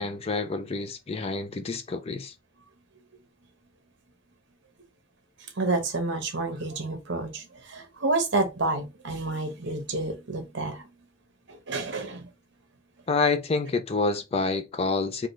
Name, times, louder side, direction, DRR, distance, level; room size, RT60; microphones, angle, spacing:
voice 1, 0.0-2.3 13.1-15.3, left 4 dB, 30° left, 0.4 m, -28 dB
voice 2, 5.6-10.9 11.5-12.3, right 2 dB, 60° right, 1.0 m, -29 dB
3.9 x 2.3 x 3.1 m
head